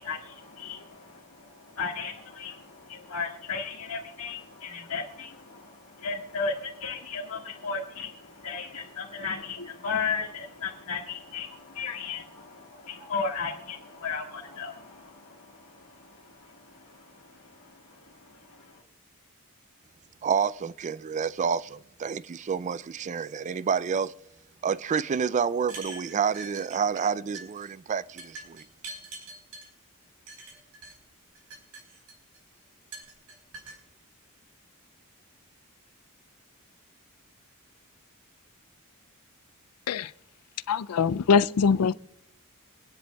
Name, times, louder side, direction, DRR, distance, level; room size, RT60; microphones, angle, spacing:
voice 1, 0.0-18.8, left 5 dB, 70° left, 1.7 m, -36 dB
voice 2, 20.2-24.2 24.6-28.6, right 6 dB, 35° right, 0.3 m, -29 dB
sound 1, 25.6-27.1 27.3-27.7 28.2-29.7 30.3-30.9 31.4-32.4 32.9-33.8, right 3 dB, 90° right, 4.0 m, -44 dB
voice 3, 40.7-41.9, left 6 dB, 85° left, 0.4 m, -22 dB
26.0 x 10.5 x 2.3 m
head